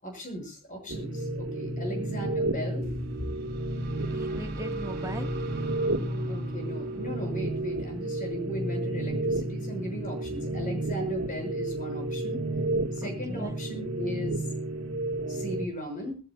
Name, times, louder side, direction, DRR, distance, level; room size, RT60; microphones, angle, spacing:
voice 1, 0.0-2.9 6.3-12.4 12.9-14.4 15.3-16.2, equal, 40° left, 3 dB, 6.3 m, -37 dB
sound 1, 0.9-15.6, right 2 dB, 65° right, 1.7 m, -31 dB
sound 2, 2.8-8.5, right 2 dB, 45° right, 3.2 m, -44 dB
voice 2, 4.1-5.5 5.9-6.3 10.5-10.6 13.0-13.6, right 1 dB, 15° right, 4 dB, 1.5 m, -40 dB
22.0 x 14.5 x 2.3 m, 0.32 s
head